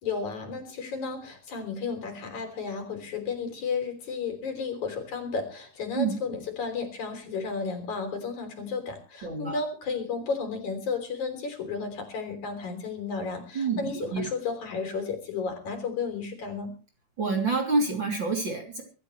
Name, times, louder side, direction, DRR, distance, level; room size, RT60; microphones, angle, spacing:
voice 1, 0.0-16.7, left 5 dB, 70° left, 6 dB, 4.8 m, -33 dB
voice 2, 9.2-9.6 13.5-14.3 17.2-18.8, right 3 dB, 35° right, 1 dB, 3.9 m, -27 dB
24.0 x 13.5 x 3.3 m, 0.35 s
omnidirectional pair, 3.5 m